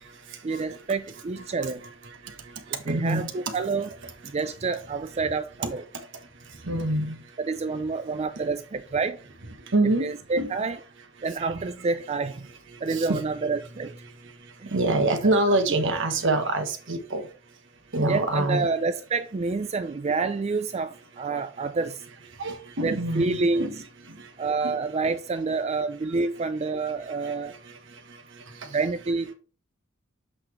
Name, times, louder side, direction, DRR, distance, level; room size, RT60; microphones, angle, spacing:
voice 1, 0.4-1.8 2.9-3.9 4.2-5.8 7.4-9.2 10.0-10.8 11.2-12.5 12.8-13.9 14.6-14.7 18.1-22.0 22.8-23.7 24.4-27.6 28.7-29.3, right 4 dB, 30° right, 0.4 m, -28 dB
voice 2, 2.9-3.3 6.7-7.2 9.7-10.1 10.4-10.5 12.9-13.2 14.7-17.2 17.9-18.7 22.4-23.7 24.6-24.7, right 2 dB, 65° right, 1.3 m, -25 dB
7.9 x 4.1 x 3.2 m
head